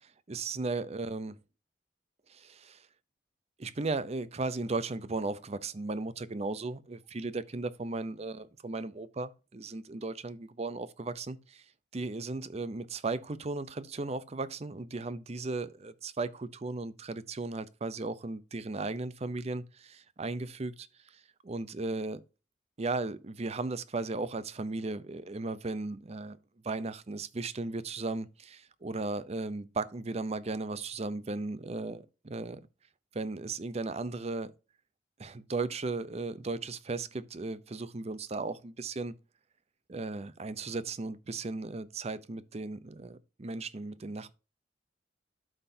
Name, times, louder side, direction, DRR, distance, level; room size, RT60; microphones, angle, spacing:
voice 1, 0.0-1.4 2.3-2.9 3.6-22.2 22.8-26.4 26.6-32.6 33.1-34.5 35.2-39.1 39.9-44.3, right 3 dB, 35° right, 0.6 m, -36 dB
12.0 x 5.7 x 2.7 m
head